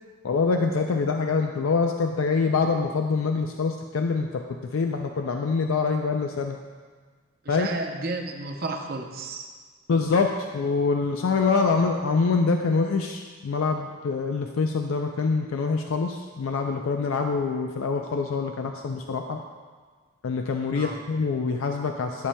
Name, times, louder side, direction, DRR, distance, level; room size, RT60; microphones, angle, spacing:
voice 1, 0.2-4.4 4.7-6.6 7.5-7.7 9.9-19.4 20.2-22.3, left 4 dB, 70° left, 4 dB, 0.4 m, -25 dB
voice 2, 7.4-9.5 20.8-21.0, right 3 dB, 45° right, 3 dB, 0.6 m, -32 dB
11.5 x 6.8 x 2.2 m, 1.5 s
head